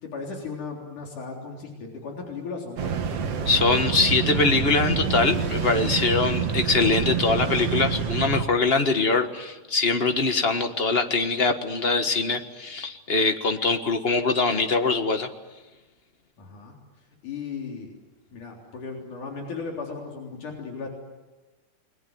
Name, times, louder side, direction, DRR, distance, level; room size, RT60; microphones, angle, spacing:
voice 1, 0.0-3.2 16.4-17.9 18.3-20.9, left 4 dB, 80° left, 1 dB, 5.1 m, -36 dB
sound 1, 2.8-8.5, right 6 dB, 55° right, 2.6 m, -27 dB
voice 2, 3.4-15.3, left 3 dB, 45° left, 7 dB, 0.7 m, -23 dB
29.5 x 21.0 x 9.5 m, 1.2 s
omnidirectional pair, 3.5 m